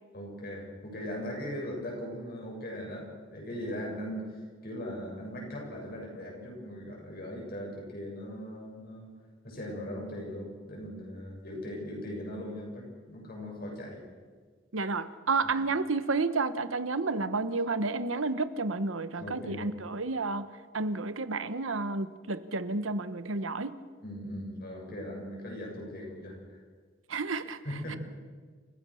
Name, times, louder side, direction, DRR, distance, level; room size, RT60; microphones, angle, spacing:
voice 1, 0.1-9.1 9.4-14.1 15.4-15.5 19.2-19.7 24.0-26.6 27.6-28.0, equal, 50° left, -1 dB, 7.3 m, -39 dB
voice 2, 14.7-20.4 20.7-23.7 27.1-27.6 27.9-28.0, right 3 dB, 90° right, 13 dB, 1.1 m, -31 dB
28.5 x 15.5 x 6.5 m, 1.6 s
head